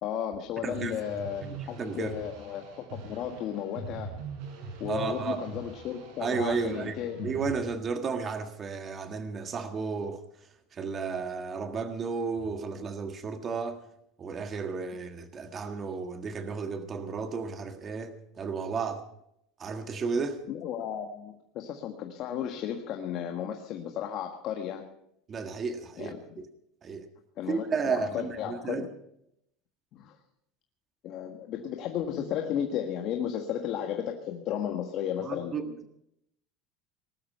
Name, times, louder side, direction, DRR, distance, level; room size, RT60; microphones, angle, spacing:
voice 1, 0.0-4.1 4.8-7.3 20.5-24.9 26.0-26.2 27.4-28.9 29.9-30.1 31.0-35.8, left 9 dB, 45° left, 4 dB, 1.5 m, -34 dB
voice 2, 0.6-1.2 1.8-2.1 4.9-5.4 6.2-7.0 7.2-10.2 10.7-13.8 14.2-19.0 19.6-20.4 25.3-26.4 26.8-27.1 27.5-28.8 35.2-35.7, right 5 dB, 25° right, 7 dB, 1.6 m, -33 dB
sound 1, 0.7-7.6, right 4 dB, 65° right, 6.1 m, -42 dB
20.0 x 12.5 x 5.6 m, 0.75 s
cardioid pair, 155°, 0 cm